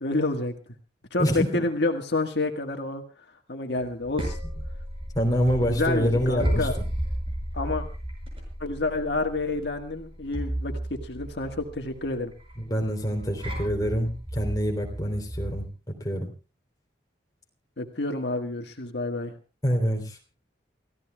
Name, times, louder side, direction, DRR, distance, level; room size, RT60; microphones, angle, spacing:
voice 1, 0.0-0.5 1.1-3.0 3.5-4.4 5.6-6.8 7.5-7.9 8.6-12.3 17.8-19.3, left 2 dB, 65° left, 4 dB, 1.6 m, -29 dB
voice 2, 1.2-1.6 5.2-6.7 12.7-15.7 16.0-16.3 19.6-20.2, equal, 20° left, 1 dB, 3.4 m, -26 dB
sound 1, 3.8-15.7, equal, 30° right, 6.0 m, -34 dB
29.0 x 15.5 x 2.3 m, 0.33 s
head